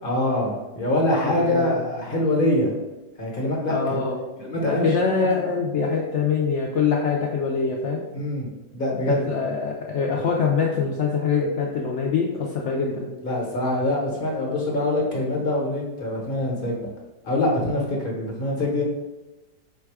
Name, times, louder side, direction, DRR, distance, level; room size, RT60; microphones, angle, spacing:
voice 1, 0.0-2.7 3.2-4.0 4.4-4.9 5.2-5.5 8.1-8.5 8.7-9.2 13.2-16.9 17.2-18.8, left 1 dB, 35° left, -2 dB, 1.1 m, -24 dB
voice 2, 1.3-1.8 3.7-4.2 4.6-8.0 8.9-13.1, left 5 dB, 85° left, -1 dB, 0.6 m, -24 dB
4.8 x 2.3 x 4.6 m, 1.1 s
omnidirectional pair, 1.8 m